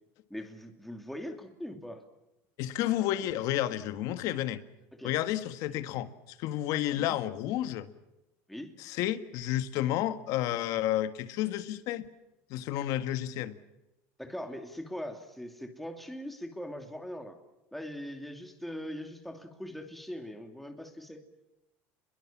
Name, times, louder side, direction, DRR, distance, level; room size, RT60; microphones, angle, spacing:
voice 1, 0.3-2.0 4.9-5.2 7.0-7.2 8.5-8.7 14.2-17.4 17.7-21.2, equal, ahead, 4 dB, 2.9 m, -41 dB
voice 2, 2.6-4.6 5.0-6.1 6.4-7.9 8.8-12.1 12.5-13.6, left 13 dB, 60° left, 11 dB, 1.7 m, -31 dB
29.0 x 22.0 x 7.4 m, 0.95 s
supercardioid pair, 135°, 7 cm